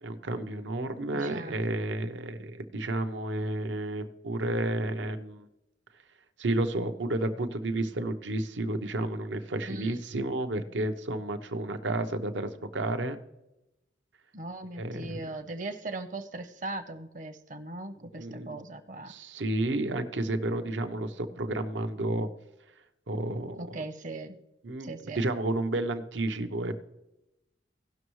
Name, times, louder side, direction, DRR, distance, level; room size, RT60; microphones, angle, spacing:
voice 1, 0.0-5.5 6.4-13.2 14.7-15.3 18.1-18.6 19.1-22.3 23.1-23.7 24.6-24.9 25.2-26.8, right 2 dB, 70° right, 7 dB, 0.9 m, -31 dB
voice 2, 1.1-1.7 9.7-10.0 14.3-19.1 23.6-24.4 24.8-25.3, right 2 dB, 45° right, 9 dB, 0.9 m, -39 dB
17.5 x 6.2 x 3.2 m, 0.92 s
head